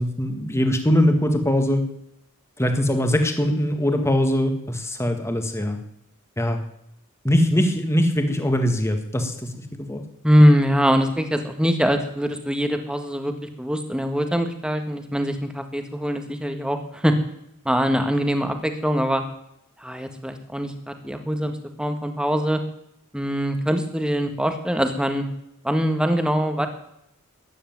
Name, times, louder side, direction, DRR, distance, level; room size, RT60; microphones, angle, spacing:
voice 1, 0.0-1.8 2.6-5.8 6.4-6.6 7.2-10.0, equal, 10° left, 6 dB, 1.9 m, -22 dB
voice 2, 10.2-17.2 17.6-19.2 19.8-22.6 23.1-25.3 25.6-26.7, equal, 5° right, 6 dB, 1.7 m, -22 dB
13.5 x 9.9 x 9.4 m, 0.78 s
head